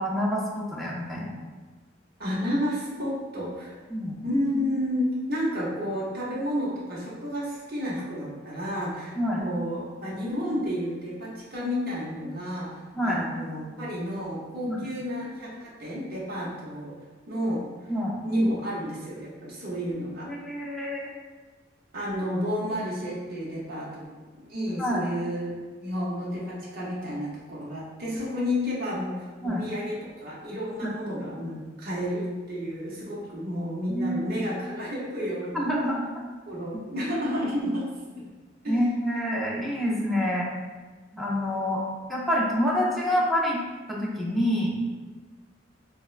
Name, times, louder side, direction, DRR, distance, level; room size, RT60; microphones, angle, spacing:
voice 1, 0.0-1.3 3.9-4.2 9.2-9.4 12.9-13.2 14.7-14.8 17.9-18.1 20.3-21.1 24.8-25.0 29.4-29.6 30.8-30.9 33.9-34.2 35.5-36.0 38.7-40.5 41.1-41.8 42.1-43.6 43.9-44.8, equal, ahead, -5 dB, 0.5 m, -27 dB
voice 2, 2.2-3.8 4.2-16.9 17.3-17.6 18.2-20.3 21.9-24.1 24.5-35.7 36.5-37.9 38.6-38.8, equal, 55° right, -7 dB, 0.7 m, -31 dB
4.2 x 2.0 x 2.3 m, 1.3 s
head